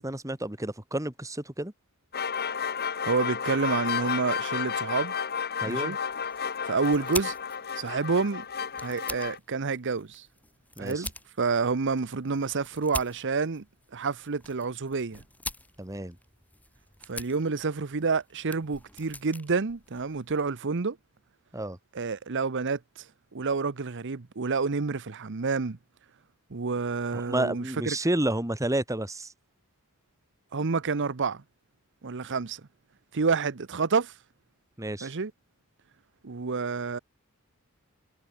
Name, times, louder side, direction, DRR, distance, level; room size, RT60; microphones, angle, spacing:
voice 1, 0.0-1.7 5.6-6.0 10.8-11.1 15.8-16.2 21.5-21.8 27.3-29.3 34.8-35.1, right 1 dB, 15° right, 1.9 m, -30 dB
sound 1, 2.1-9.4, left 7 dB, 45° left, 2.0 m, -32 dB
voice 2, 3.0-5.1 5.6-6.0 6.6-7.3 7.8-8.4 8.8-10.3 10.8-11.1 11.4-13.6 13.9-15.2 17.1-21.0 21.9-23.1 23.3-25.8 26.5-28.0 30.5-31.4 32.0-32.6 33.1-34.1 35.0-35.3 36.2-37.0, right 4 dB, 55° right, 0.8 m, -28 dB
sound 2, 6.0-20.6, left 2 dB, 5° left, 4.9 m, -44 dB
head